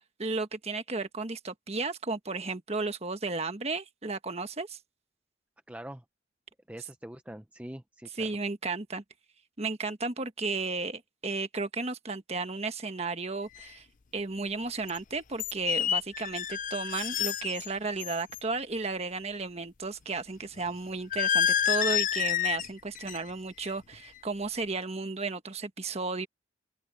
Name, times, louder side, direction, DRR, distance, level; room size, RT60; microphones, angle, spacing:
voice 1, 0.0-4.8 8.2-9.0 9.6-13.8 14.1-26.3, right 3 dB, 35° right, 1.4 m, -34 dB
voice 2, 5.7-6.0 6.7-8.3, right 1 dB, 5° right, 0.6 m, -44 dB
sound 1, 13.6-13.7 14.9-15.0 15.4-17.7 18.0-18.4 21.1-22.7 23.0-23.3 23.6-23.9, left 9 dB, 45° left, 0.5 m, -29 dB
open air
head